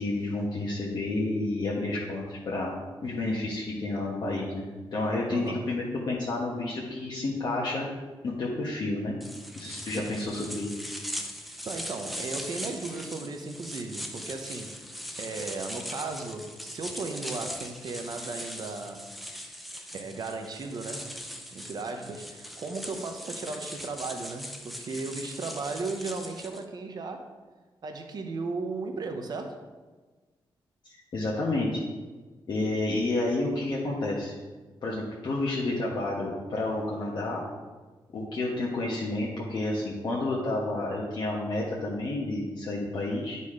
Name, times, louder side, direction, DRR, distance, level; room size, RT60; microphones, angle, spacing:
voice 1, 0.0-2.7 3.0-7.9 8.2-9.1 9.5-10.7 31.1-31.8 32.5-34.3 34.8-37.4 38.1-43.4, left 2 dB, 55° left, -4 dB, 1.2 m, -30 dB
voice 2, 5.3-5.7 10.0-10.3 11.6-14.8 15.2-19.1 19.9-21.2 21.5-27.3 27.8-29.6, right 3 dB, 50° right, 5 dB, 0.8 m, -36 dB
sound 1, 9.2-26.6, equal, ahead, 0.5 m, -40 dB
10.5 x 4.1 x 4.9 m, 1.3 s
wide cardioid pair, 160°, 9 cm